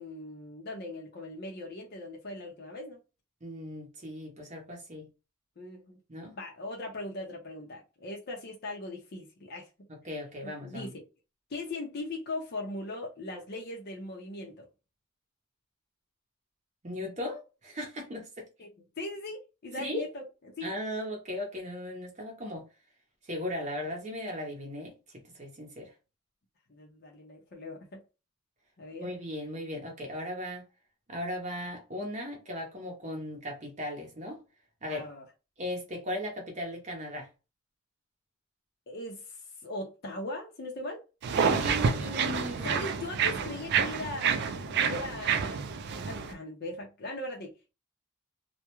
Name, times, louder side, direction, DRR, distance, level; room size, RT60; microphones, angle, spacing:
voice 1, 0.0-3.0 5.6-6.0 6.4-9.7 10.4-11.0 11.5-14.7 18.6-18.7 19.0-20.2 20.6-20.7 26.7-28.0 28.8-29.1 34.9-35.2 38.9-41.0 42.6-45.6 46.0-47.5, left 2 dB, 50° left, 0.6 m, -39 dB
voice 2, 3.4-5.1 6.1-6.4 9.9-10.9 16.8-18.5 19.8-20.1 20.6-22.7 23.2-24.9 25.3-25.9 29.0-30.6 31.1-34.4 34.8-35.1 35.6-37.3 41.4-42.7, left 1 dB, 35° right, 0.7 m, -37 dB
sound 1, 41.2-46.3, right 6 dB, 55° right, 0.4 m, -29 dB
2.3 x 2.1 x 2.9 m
head